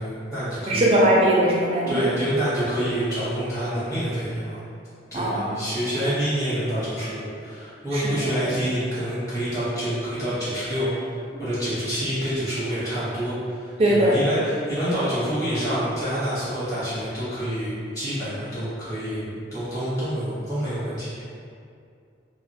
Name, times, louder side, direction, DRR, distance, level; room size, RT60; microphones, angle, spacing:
voice 1, 0.0-0.9 1.9-4.6 5.1-10.9 11.4-21.2, equal, 20° left, -13 dB, 0.8 m, -27 dB
voice 2, 0.7-2.0 5.1-5.4 7.9-8.3 13.8-14.1, right 1 dB, 30° right, -4 dB, 0.4 m, -20 dB
2.2 x 2.2 x 2.5 m, 2.4 s
head